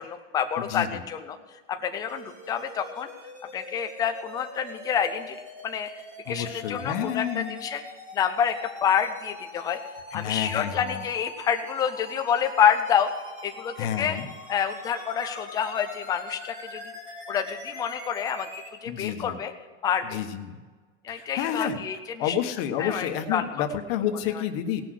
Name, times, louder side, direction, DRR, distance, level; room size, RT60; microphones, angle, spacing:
voice 1, 0.0-1.4 1.7-3.1 3.5-5.9 6.3-7.8 8.1-9.8 10.1-13.1 13.4-14.2 14.5-16.9 17.3-18.5 18.8-19.5 19.8-20.2 21.0-22.4 22.8-23.5 24.3-24.4, left 8 dB, 10° left, 7 dB, 0.3 m, -28 dB
voice 2, 0.6-0.9 6.3-7.6 10.1-11.0 13.8-14.3 18.9-19.4 20.1-20.6 21.1-21.8 22.2-24.8, left 9 dB, 50° left, 6 dB, 1.3 m, -30 dB
sound 1, 2.1-18.7, left 1 dB, 20° right, 3.0 m, -43 dB
18.0 x 6.2 x 6.5 m, 1.4 s
supercardioid pair, 155°, 38 cm